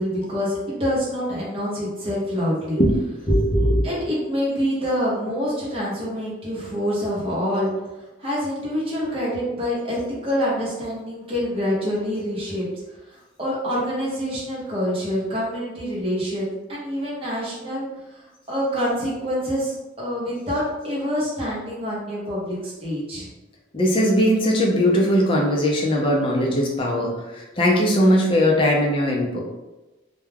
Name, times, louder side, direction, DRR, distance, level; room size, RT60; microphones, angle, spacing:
voice 1, 0.0-2.8 3.8-7.7 8.2-12.7 13.1-17.9 18.1-23.3, equal, 30° right, -6 dB, 0.8 m, -26 dB
voice 2, 3.3-3.8 23.7-29.4, equal, 25° left, -2 dB, 0.5 m, -19 dB
2.2 x 2.2 x 3.3 m, 1.1 s
head